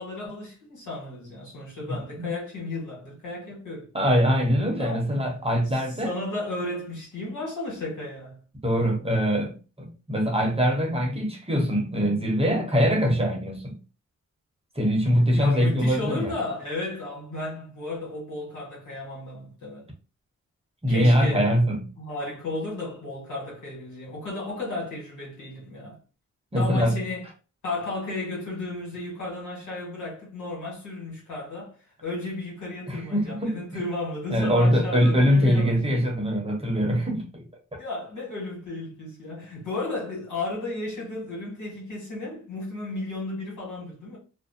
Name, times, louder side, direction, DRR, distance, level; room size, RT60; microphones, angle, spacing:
voice 1, 0.0-3.9 4.8-5.0 6.0-8.4 15.3-19.9 20.9-21.5 22.0-26.0 26.5-27.3 27.6-31.7 32.0-36.0 37.8-44.2, left 2 dB, 85° left, 1.4 m, -34 dB
voice 2, 1.9-2.3 3.9-6.1 8.6-9.5 9.8-13.8 14.8-16.3 20.8-21.8 26.5-27.0 32.9-33.8 34.3-37.4 37.7-37.8, equal, 20° right, 0.9 m, -23 dB
2.5 x 2.0 x 2.6 m
cardioid pair, 70°, 30 cm